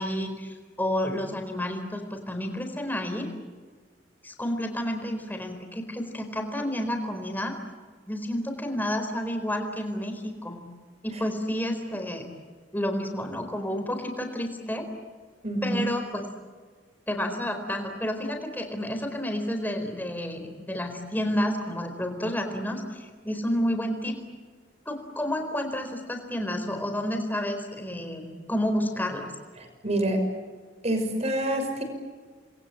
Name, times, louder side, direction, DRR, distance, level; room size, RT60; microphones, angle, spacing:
voice 1, 0.0-3.3 4.2-7.5 8.1-10.6 11.0-12.3 12.7-14.9 15.6-16.2 17.1-24.2 24.9-29.3, left 1 dB, 10° left, 4 dB, 4.4 m, -30 dB
voice 2, 15.4-15.8 29.6-30.2 30.8-31.8, right 1 dB, 40° right, 5 dB, 6.2 m, -27 dB
29.0 x 21.5 x 8.6 m, 1.5 s
head